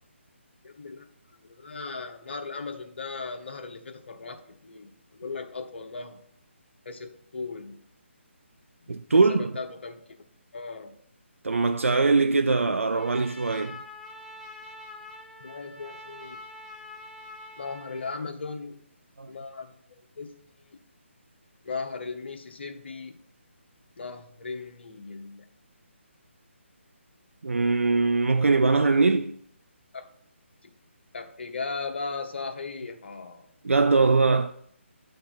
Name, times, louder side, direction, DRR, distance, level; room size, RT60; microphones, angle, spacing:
voice 1, 0.6-1.1 1.4-6.2 6.8-7.8 9.1-10.2 10.5-10.9 15.4-16.4 17.6-18.8 19.3-20.3 20.7-20.8 21.6-23.2 24.0-25.5 29.9-30.1 30.6-30.7 31.1-33.5, left 4 dB, 55° left, 0.9 m, -37 dB
voice 2, 8.9-9.5 11.4-13.8 19.2-19.3 27.4-29.3 33.6-34.5, right 3 dB, 85° right, 0.4 m, -22 dB
Trumpet, 12.9-18.2, left 2 dB, ahead, 0.5 m, -45 dB
8.5 x 3.3 x 5.7 m
figure-of-eight pair, 150°, 7 cm